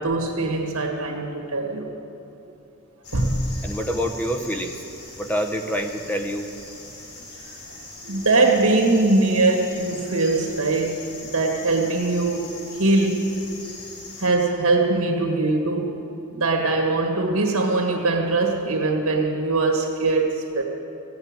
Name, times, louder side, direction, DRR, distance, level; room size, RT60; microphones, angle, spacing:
voice 1, 0.0-1.9 3.1-3.7 8.0-11.0 11.3-13.3 14.2-16.0 16.3-20.6, right 2 dB, 75° right, 1 dB, 1.7 m, -22 dB
sound 1, 3.0-14.3, left 3 dB, 90° left, 2.9 m, -41 dB
voice 2, 3.6-4.8 5.1-6.5, equal, 10° left, 5 dB, 0.8 m, -26 dB
16.5 x 7.9 x 8.9 m, 2.9 s
head